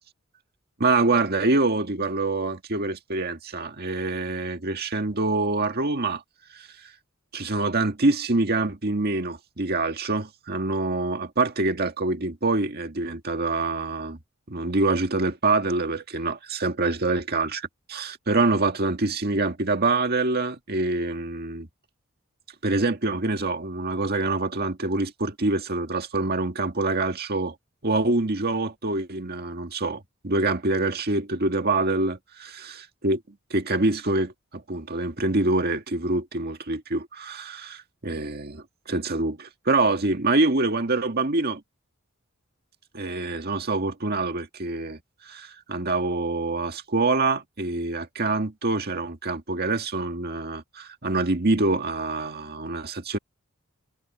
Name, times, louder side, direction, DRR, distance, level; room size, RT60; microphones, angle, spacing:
voice 1, 0.8-6.2 6.5-6.7 7.3-14.2 14.5-17.6 17.9-21.7 22.6-27.5 27.8-33.2 33.5-41.6 42.9-53.2, right 2 dB, 50° right, 1.9 m, -25 dB
head